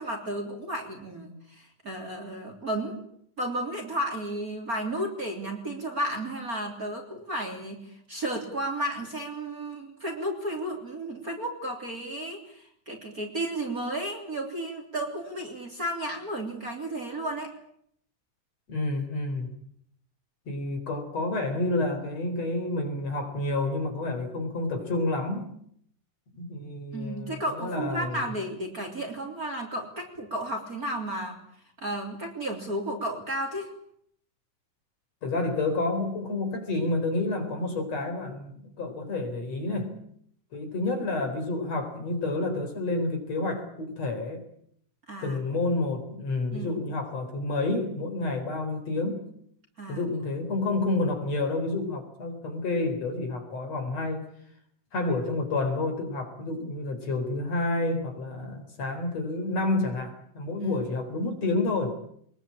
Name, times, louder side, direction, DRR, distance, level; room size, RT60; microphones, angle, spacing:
voice 1, 0.0-3.0 3.4-17.5 26.9-31.4 31.8-33.7 45.1-45.4 46.5-46.8 49.8-50.3 60.6-60.8, right 1 dB, 25° right, 3 dB, 3.5 m, -33 dB
voice 2, 18.7-19.5 20.5-25.5 26.3-28.2 35.2-40.0 40.5-44.4 45.2-49.3 49.9-54.3 54.9-61.9, left 2 dB, 50° left, 5 dB, 5.3 m, -29 dB
23.5 x 21.5 x 8.8 m, 0.68 s
omnidirectional pair, 4.0 m